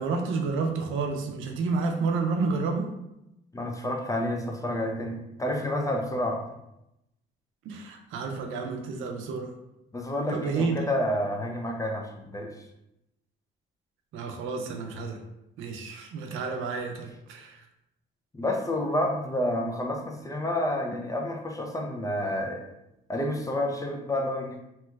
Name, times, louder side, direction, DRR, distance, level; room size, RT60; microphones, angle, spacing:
voice 1, 0.0-2.9 7.7-9.5 10.3-10.8 14.1-15.2 15.6-17.6, right 4 dB, 90° right, 3 dB, 0.5 m, -30 dB
voice 2, 3.5-6.4 9.9-12.5 18.3-22.7 23.1-24.6, left 1 dB, 15° left, 2 dB, 0.5 m, -29 dB
3.0 x 2.3 x 3.1 m, 0.87 s
cardioid pair, 90°, 20 cm